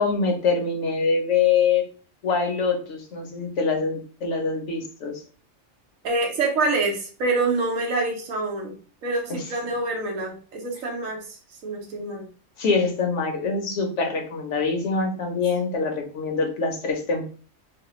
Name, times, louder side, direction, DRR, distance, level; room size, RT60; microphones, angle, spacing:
voice 1, 0.0-1.8 2.2-5.2 9.3-9.4 12.6-17.2, left 4 dB, 65° left, 3 dB, 1.0 m, -24 dB
voice 2, 6.0-8.7 9.0-12.3, right 3 dB, 80° right, 1 dB, 1.3 m, -26 dB
3.2 x 2.1 x 3.0 m, 0.40 s
omnidirectional pair, 1.4 m